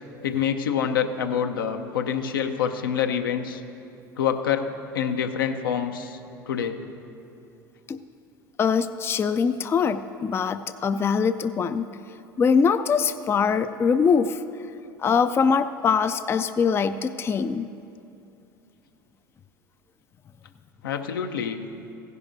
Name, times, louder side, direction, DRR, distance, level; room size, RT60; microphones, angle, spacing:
voice 1, 0.2-3.6 4.2-4.7 4.9-6.2 6.5-6.8 20.8-21.6, left 8 dB, 75° left, 6 dB, 0.7 m, -26 dB
voice 2, 8.6-11.9 12.4-14.4 15.0-17.7, left 6 dB, 20° left, 11 dB, 0.3 m, -23 dB
16.5 x 11.0 x 2.6 m, 2.7 s
figure-of-eight pair, 70°, 12 cm